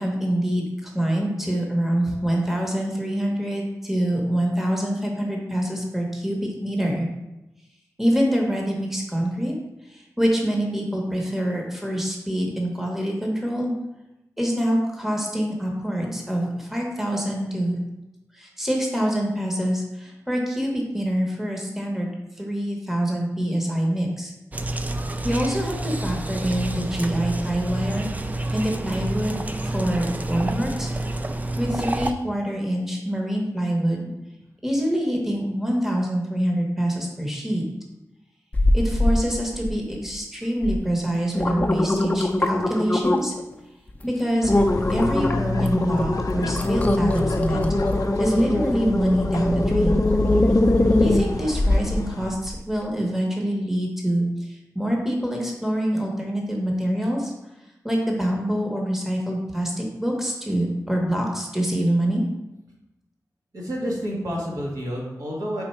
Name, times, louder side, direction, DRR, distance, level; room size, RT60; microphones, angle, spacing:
voice 1, 0.0-7.1 8.0-9.5 9.9-13.7 14.4-17.8 18.3-22.1 22.4-24.3 25.2-28.1 28.5-30.9 31.6-34.1 34.6-37.7 38.7-43.3 44.0-44.5 44.9-47.7 48.2-50.0 51.0-57.3 57.8-62.2, equal, 5° right, 0 dB, 1.1 m, -25 dB
sound 1, 24.5-32.1, right 2 dB, 25° right, 0.4 m, -28 dB
sound 2, 38.5-39.2 39.6-40.1 40.6-40.8 41.2-43.4 43.9-44.0 44.5-52.0 52.5-52.6, left 1 dB, 25° left, 0.5 m, -22 dB
sound 3, 44.4-52.3, left 3 dB, 70° left, 0.5 m, -30 dB
voice 2, 63.5-65.6, equal, 70° right, -4 dB, 1.6 m, -29 dB
4.9 x 4.4 x 4.4 m, 0.97 s
wide cardioid pair, 85°, 6 cm